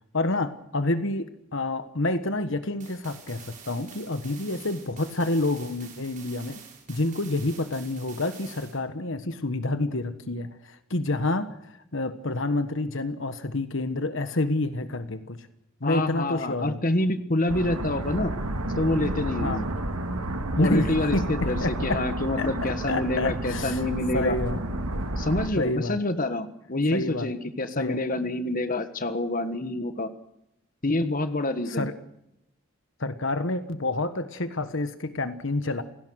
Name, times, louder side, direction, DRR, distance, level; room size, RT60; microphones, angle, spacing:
voice 1, 0.1-1.3 1.5-6.6 6.9-15.5 15.8-16.8 19.4-19.6 20.6-22.0 22.4-22.5 22.9-23.8 24.1-24.6 25.6-26.0 26.9-27.3 27.8-28.0 31.7-31.9 33.0-35.8, left 2 dB, 60° left, 10 dB, 1.4 m, -28 dB
sound 1, 2.8-8.8, right 7 dB, 35° right, 6.7 m, -47 dB
voice 2, 15.8-18.3 18.8-19.6 20.6-24.4 25.2-30.1 30.8-31.9, left 2 dB, 40° left, 10 dB, 1.5 m, -27 dB
sound 2, 17.5-25.5, right 1 dB, 85° right, 2.4 m, -31 dB
29.5 x 17.0 x 6.5 m, 0.81 s
head